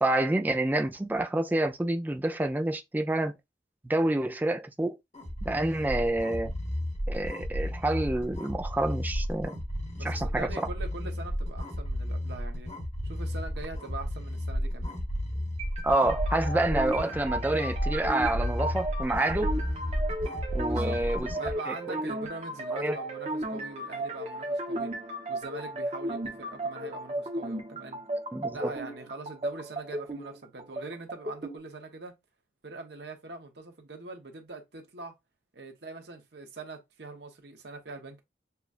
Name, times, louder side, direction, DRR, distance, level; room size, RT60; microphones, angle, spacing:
voice 1, 0.0-3.4 3.8-5.0 5.4-6.5 7.1-9.6 10.0-10.5 15.8-19.6 20.5-21.3 21.7-22.0 22.7-23.0 28.3-28.7, right 1 dB, 10° right, 0.3 m, -28 dB
sound 1, 5.1-21.5, equal, 40° left, 1.2 m, -33 dB
voice 2, 10.0-12.7 13.0-15.0 20.7-21.0 21.4-24.9 25.3-28.0 28.5-32.1 32.6-35.1 35.5-38.2, right 3 dB, 70° right, 1.0 m, -42 dB
sound 2, 15.6-31.6, right 1 dB, 35° right, 0.8 m, -35 dB
6.8 x 2.3 x 2.4 m
head